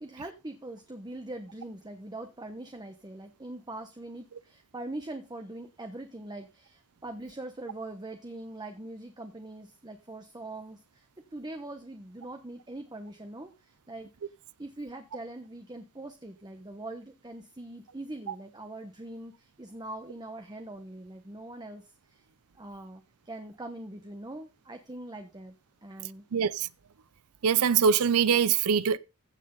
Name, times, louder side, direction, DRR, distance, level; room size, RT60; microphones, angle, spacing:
voice 1, 0.0-14.3 14.6-21.8 22.1-22.3 22.6-25.5 25.8-26.2, right 2 dB, 20° right, 1.1 m, -42 dB
voice 2, 26.3-26.7 27.4-29.0, right 7 dB, 75° right, 0.5 m, -23 dB
16.0 x 6.3 x 3.9 m
head